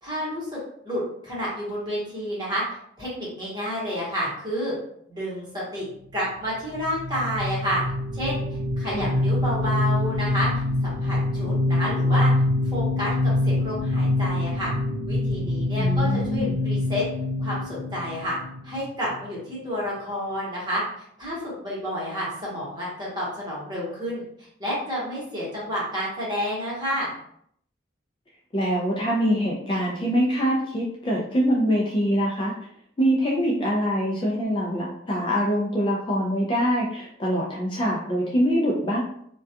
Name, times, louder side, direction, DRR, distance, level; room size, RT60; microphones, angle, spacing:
voice 1, 0.0-2.6 3.0-4.7 5.1-7.8 8.1-8.4 8.8-10.5 10.8-12.3 12.6-14.7 15.1-17.0 17.4-18.4 18.6-20.8 21.2-24.2 24.6-27.1, equal, 25° right, -7 dB, 1.0 m, -30 dB
sound 1, 6.7-19.2, left 1 dB, 60° right, 0.6 m, -25 dB
voice 2, 15.8-16.6 28.5-32.5 33.0-39.0, equal, 25° left, -3 dB, 0.3 m, -24 dB
2.2 x 2.2 x 2.7 m, 0.68 s
head